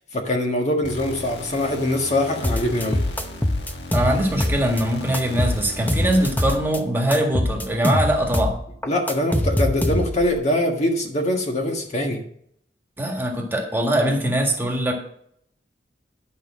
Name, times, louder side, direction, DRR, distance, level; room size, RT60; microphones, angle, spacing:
voice 1, 0.1-3.0 8.8-12.2, left 1 dB, 40° left, 2 dB, 1.5 m, -23 dB
sound 1, 0.8-6.6, left 2 dB, 80° left, 1.4 m, -37 dB
sound 2, 2.4-4.8 5.1-6.8 7.1-10.3, left 1 dB, 10° left, 0.8 m, -23 dB
voice 2, 3.9-8.5 13.0-14.9, right 1 dB, 15° right, 1 dB, 1.8 m, -22 dB
11.5 x 5.4 x 6.3 m, 0.68 s
head